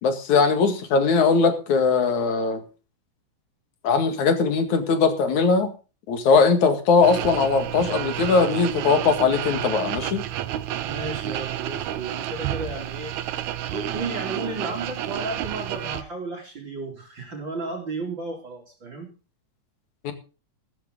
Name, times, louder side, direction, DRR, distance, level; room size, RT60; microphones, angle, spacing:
voice 1, 0.0-2.6 3.8-5.7 6.1-10.2 20.0-20.1, left 4 dB, 70° left, 8 dB, 3.3 m, -20 dB
sound 1, 7.0-16.0, right 11 dB, 75° right, 2.2 m, -30 dB
voice 2, 10.8-13.1 13.7-19.1, right 3 dB, 40° right, 1 dB, 3.3 m, -33 dB
14.0 x 13.5 x 3.8 m, 0.33 s
omnidirectional pair, 3.5 m